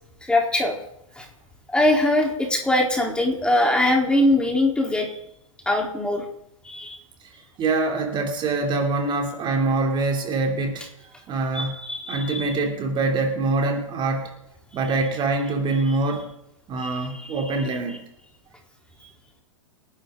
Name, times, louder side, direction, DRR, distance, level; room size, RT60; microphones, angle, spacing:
voice 1, 0.2-0.8 1.2-1.3 1.7-5.1 5.7-6.2 6.6-7.0 11.5-12.4 15.8-16.0 16.8-17.5, left 1 dB, 5° left, 0 dB, 3.6 m, -22 dB
voice 2, 7.6-10.8 11.3-11.8 12.1-14.3 14.7-16.2 16.7-18.0, right 3 dB, 25° right, 2 dB, 3.0 m, -24 dB
28.5 x 11.5 x 3.8 m, 0.77 s
hypercardioid pair, 115°, 18 cm